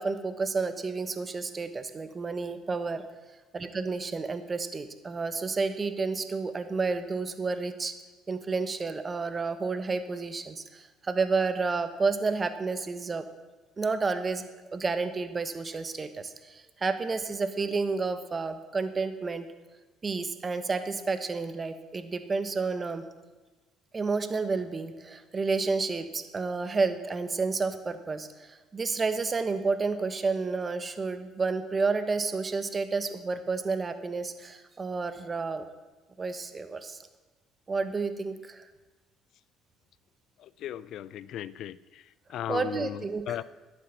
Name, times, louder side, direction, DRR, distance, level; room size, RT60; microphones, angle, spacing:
voice 1, 0.0-3.0 3.5-7.9 8.3-13.3 13.8-19.5 20.0-23.0 23.9-35.6 36.2-37.0 37.7-38.6 42.5-43.4, right 4 dB, 30° right, 10 dB, 1.3 m, -30 dB
voice 2, 40.6-41.8 42.3-43.0 43.3-43.4, left 11 dB, 65° left, 19 dB, 0.4 m, -35 dB
12.0 x 8.5 x 7.2 m, 1.2 s
hypercardioid pair, 65°, 0 cm